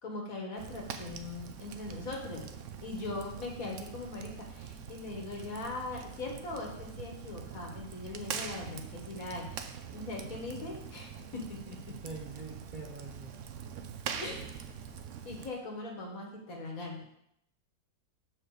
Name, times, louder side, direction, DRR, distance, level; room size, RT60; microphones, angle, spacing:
voice 1, 0.0-2.5 2.8-11.9 14.2-14.8 15.2-17.0, left 2 dB, 50° left, 0 dB, 1.7 m, -40 dB
Fire, 0.6-15.5, right 7 dB, 70° right, 0.7 m, -44 dB
voice 2, 11.9-13.4, right 3 dB, 35° right, -4 dB, 0.8 m, -44 dB
5.9 x 4.7 x 6.6 m, 0.76 s
omnidirectional pair, 1.9 m